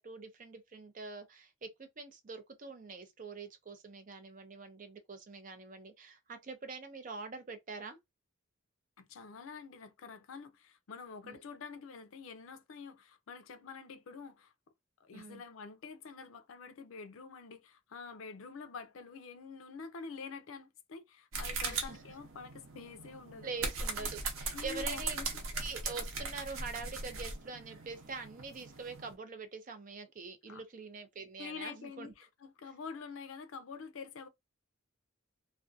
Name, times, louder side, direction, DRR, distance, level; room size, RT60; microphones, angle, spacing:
voice 1, 0.0-8.0 11.2-11.4 15.1-15.4 21.6-22.0 23.4-25.2 25.5-32.1, right 4 dB, 40° right, 0.5 m, -45 dB
voice 2, 9.0-14.5 15.0-23.5 24.0-24.1 24.5-25.3 30.5-30.6 31.4-34.3, left 5 dB, 85° left, 0.5 m, -47 dB
sound 1, 21.3-29.1, right 4 dB, 85° right, 0.7 m, -39 dB
2.5 x 2.1 x 2.4 m
head